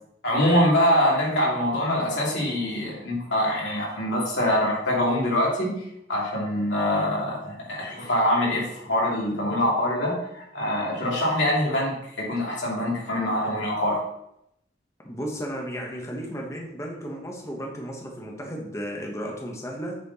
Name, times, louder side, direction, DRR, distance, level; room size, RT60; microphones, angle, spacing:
voice 1, 0.2-5.7 6.1-14.0, left 1 dB, 85° left, -4 dB, 2.7 m, -24 dB
voice 2, 15.0-20.0, equal, 15° left, 0 dB, 1.1 m, -34 dB
8.4 x 4.3 x 4.1 m, 0.79 s
head